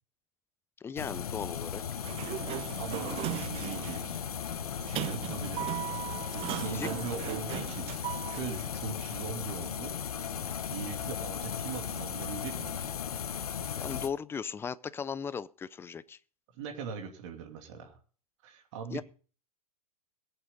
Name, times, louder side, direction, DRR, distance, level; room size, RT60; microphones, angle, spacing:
voice 1, 0.8-1.8 6.6-6.9 13.8-16.2 18.9-19.0, left 6 dB, 10° left, 0.5 m, -37 dB
sound 1, 1.0-14.1, left 8 dB, 80° left, 1.3 m, -37 dB
Sliding door, 1.9-8.4, right 14 dB, 30° right, 0.7 m, -38 dB
voice 2, 2.8-4.2 4.8-5.7 6.3-10.0 10.7-12.9 13.7-13.9 16.5-18.0 18.4-19.0, right 6 dB, 55° right, 2.7 m, -40 dB
22.0 x 8.1 x 3.8 m
hypercardioid pair, 110°, 19 cm